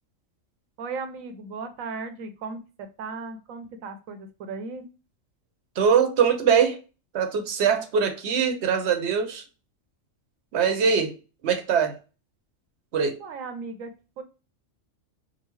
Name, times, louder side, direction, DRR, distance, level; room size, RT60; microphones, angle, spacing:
voice 1, 0.8-4.9 13.2-14.2, right 4 dB, 80° right, 1.1 m, -36 dB
voice 2, 5.8-6.8 7.1-9.4 10.5-11.2 11.4-12.0 12.9-13.2, right 6 dB, 60° right, 0.9 m, -22 dB
3.9 x 2.0 x 3.0 m
omnidirectional pair, 1.4 m